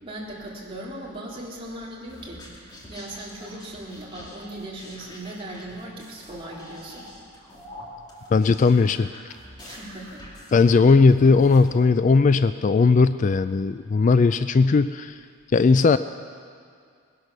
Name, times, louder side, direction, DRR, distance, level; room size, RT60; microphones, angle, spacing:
voice 1, 0.0-2.4 2.9-7.1 9.6-10.3, right 1 dB, 25° right, -4 dB, 3.1 m, -38 dB
sound 1, 2.1-11.7, left 1 dB, 20° left, 2.4 m, -45 dB
voice 2, 8.3-9.1 10.5-15.2 15.5-16.0, left 4 dB, 40° left, 12 dB, 0.3 m, -18 dB
19.5 x 11.0 x 6.7 m, 2.2 s
head